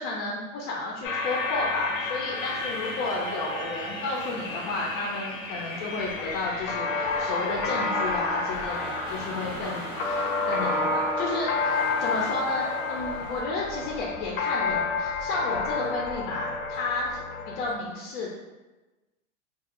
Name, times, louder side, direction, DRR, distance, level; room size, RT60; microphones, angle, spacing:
voice 1, 0.0-17.2 17.5-18.3, left 3 dB, 45° left, -3 dB, 0.5 m, -32 dB
sound 1, 1.0-17.8, left 3 dB, 90° left, 0.6 m, -30 dB
sound 2, 1.2-13.4, right 3 dB, 90° right, 0.6 m, -45 dB
sound 3, 3.0-5.4 8.5-8.7, right 7 dB, 35° right, 0.4 m, -40 dB
2.4 x 2.4 x 2.9 m, 1.1 s
hypercardioid pair, 125°, 39 cm